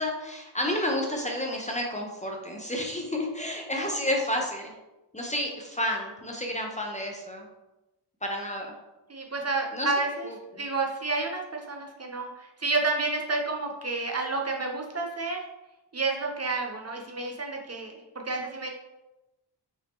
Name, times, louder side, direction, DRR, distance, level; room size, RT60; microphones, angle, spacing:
voice 1, 0.0-4.7 5.1-7.5 8.2-8.7 9.7-9.9 10.2-10.6, left 1 dB, 15° left, 0 dB, 0.6 m, -31 dB
voice 2, 9.1-10.3 10.6-15.4 15.9-18.7, right 3 dB, 35° right, 1 dB, 0.6 m, -30 dB
5.2 x 2.7 x 3.5 m, 0.98 s
wide cardioid pair, 130°, 45 cm